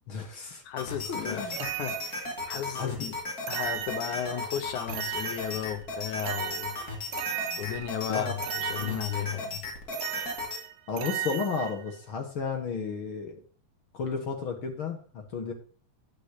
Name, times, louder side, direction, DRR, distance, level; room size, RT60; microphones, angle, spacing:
voice 1, 0.1-0.6 1.0-1.6 2.7-2.9 8.1-8.4 8.8-9.1 10.9-13.4 13.9-15.5, left 5 dB, 50° left, 1.7 m, -33 dB
voice 2, 0.7-3.1 3.5-6.8 7.6-9.6, left 10 dB, 70° left, 2.1 m, -34 dB
sound 1, 0.8-10.6, left 2 dB, 30° left, 2.4 m, -36 dB
sound 2, 1.5-2.5 3.5-4.5 4.9-5.9 6.2-8.1 8.4-9.4 9.9-12.0, right 12 dB, 85° right, 2.8 m, -36 dB
13.0 x 8.5 x 2.8 m
omnidirectional pair, 4.0 m